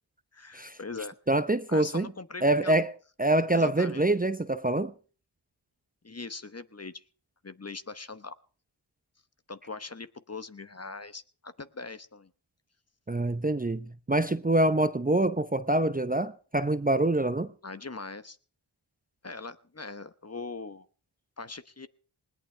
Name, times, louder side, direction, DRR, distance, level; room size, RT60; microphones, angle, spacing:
voice 1, 0.3-1.1 1.7-2.7 3.5-4.0 6.0-7.0 7.4-8.3 9.5-12.3 17.6-18.4 19.2-20.8 21.4-21.9, left 3 dB, 30° left, 1.0 m, -41 dB
voice 2, 1.3-2.1 2.4-2.9 3.2-4.9 13.1-17.5, right 2 dB, 20° right, 0.7 m, -25 dB
20.0 x 18.0 x 3.4 m
cardioid pair, 45°, 48 cm